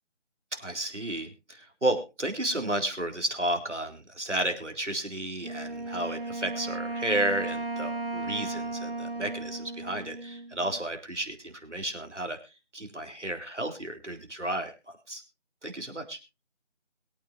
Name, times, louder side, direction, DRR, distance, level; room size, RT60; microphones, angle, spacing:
voice 1, 0.6-12.4 12.7-15.2 15.6-16.2, right 1 dB, 70° right, 5 dB, 3.7 m, -32 dB
Wind instrument woodwind instrument, 5.4-10.9, right 2 dB, 50° right, 1.0 m, -35 dB
22.5 x 9.0 x 2.6 m, 0.27 s
figure-of-eight pair, 175°, 37 cm